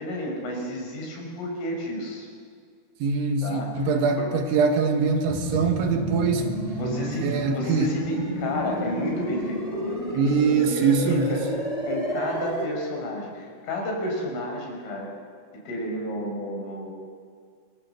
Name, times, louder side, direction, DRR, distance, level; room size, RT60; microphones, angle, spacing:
voice 1, 0.0-2.3 3.4-4.3 6.3-10.3 10.5-11.4 11.8-15.1 15.5-16.9, left 1 dB, 70° left, 1 dB, 7.8 m, -32 dB
voice 2, 3.0-6.5 7.2-7.9 10.1-11.3, right 5 dB, 70° right, 4 dB, 4.0 m, -23 dB
sound 1, 5.2-12.6, equal, 5° right, 6.0 m, -30 dB
28.5 x 24.5 x 7.9 m, 2.1 s
omnidirectional pair, 5.9 m